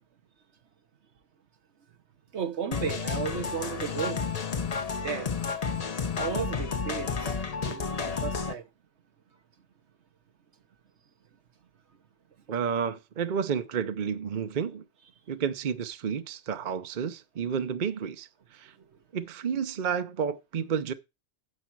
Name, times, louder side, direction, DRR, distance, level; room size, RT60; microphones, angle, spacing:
voice 1, 2.3-4.2 5.0-5.3 6.2-7.3 7.6-8.7 18.8-18.9, right 7 dB, 75° right, 1.3 m, -34 dB
sound 1, 2.7-8.5, left 5 dB, 40° left, 0.8 m, -31 dB
voice 2, 12.5-14.8 15.3-18.7 19.1-20.9, right 7 dB, 45° right, 0.8 m, -31 dB
9.7 x 7.4 x 4.6 m
omnidirectional pair, 1.2 m